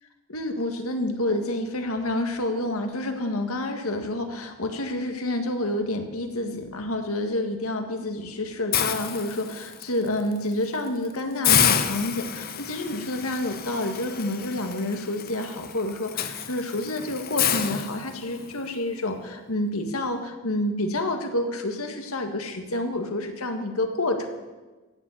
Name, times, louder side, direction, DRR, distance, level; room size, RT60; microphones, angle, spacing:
voice 1, 0.3-24.3, left 1 dB, 80° left, 6 dB, 1.8 m, -29 dB
Hiss, 8.7-9.8 10.3-10.5 10.9-11.0 11.4-18.5, left 9 dB, 40° left, 0.8 m, -28 dB
15.5 x 7.4 x 8.6 m, 1.2 s
head